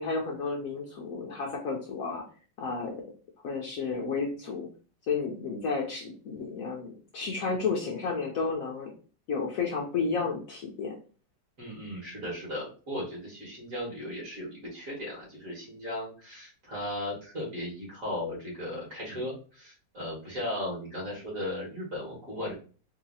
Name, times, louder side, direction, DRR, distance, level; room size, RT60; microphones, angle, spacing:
voice 1, 0.0-2.2 2.6-3.0 3.4-4.7 5.1-8.9 9.3-10.9, left 4 dB, 60° left, 0 dB, 1.0 m, -32 dB
voice 2, 11.6-22.5, left 1 dB, 50° right, -3 dB, 2.2 m, -36 dB
4.0 x 2.8 x 2.7 m, 0.37 s
omnidirectional pair, 1.9 m